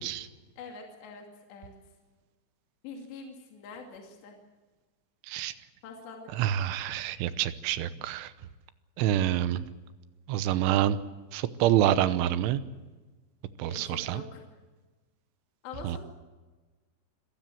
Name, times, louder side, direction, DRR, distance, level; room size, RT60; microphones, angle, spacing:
voice 1, 0.6-1.7 2.8-4.4 5.8-6.3 13.7-14.4 15.6-16.0, left 4 dB, 65° left, 2 dB, 4.6 m, -44 dB
voice 2, 6.3-8.3 9.0-9.7 10.3-11.0 11.3-12.6 13.6-14.2 15.8-16.0, right 12 dB, 80° right, 13 dB, 3.3 m, -27 dB
26.5 x 16.5 x 7.7 m, 1.2 s
omnidirectional pair, 5.6 m